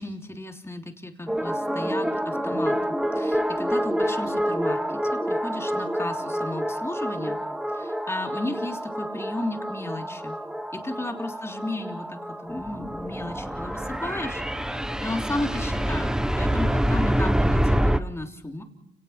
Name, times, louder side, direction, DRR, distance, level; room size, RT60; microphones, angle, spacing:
voice 1, 0.0-4.8 5.1-7.4 7.7-10.4 10.7-18.6, left 1 dB, 15° left, 3 dB, 3.2 m, -34 dB
sound 1, 1.3-18.0, equal, 5° right, 1.1 m, -27 dB
29.5 x 18.5 x 5.9 m, 0.78 s
cardioid pair, 90°, 20 cm